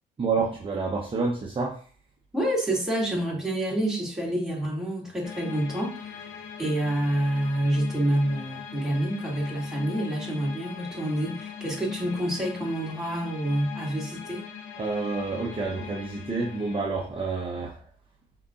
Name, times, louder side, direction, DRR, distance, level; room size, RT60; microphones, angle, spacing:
voice 1, 0.2-1.8 14.8-17.8, right 4 dB, 25° right, 0 dB, 0.8 m, -29 dB
voice 2, 2.3-14.4, right 1 dB, 5° right, -4 dB, 2.3 m, -28 dB
sound 1, 5.2-16.8, left 7 dB, 80° left, 0.7 m, -40 dB
5.3 x 3.8 x 2.4 m, 0.43 s
cardioid pair, 90°, 20 cm